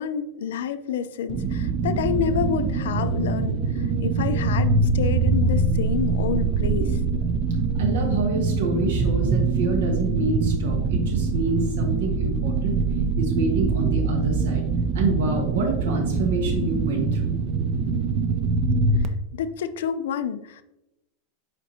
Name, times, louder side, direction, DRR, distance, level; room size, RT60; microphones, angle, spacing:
voice 1, 0.0-7.0 19.0-20.6, left 8 dB, 85° left, 11 dB, 0.5 m, -29 dB
sound 1, 1.3-19.1, right 4 dB, 25° right, 0.4 m, -23 dB
voice 2, 7.7-12.8 13.2-14.6 14.9-17.3, right 2 dB, 85° right, 2 dB, 1.3 m, -27 dB
8.0 x 4.6 x 2.8 m, 0.91 s
supercardioid pair, 180°, 0 cm